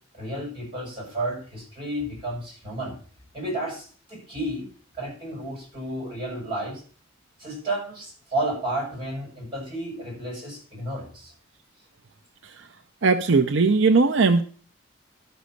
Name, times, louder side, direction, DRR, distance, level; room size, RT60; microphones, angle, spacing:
voice 1, 0.1-3.0 3.3-4.7 4.9-6.8 7.4-11.3, right 1 dB, 25° right, -2 dB, 7.8 m, -32 dB
voice 2, 13.0-14.4, right 4 dB, 65° right, 8 dB, 0.6 m, -19 dB
12.5 x 6.3 x 6.5 m, 0.43 s
head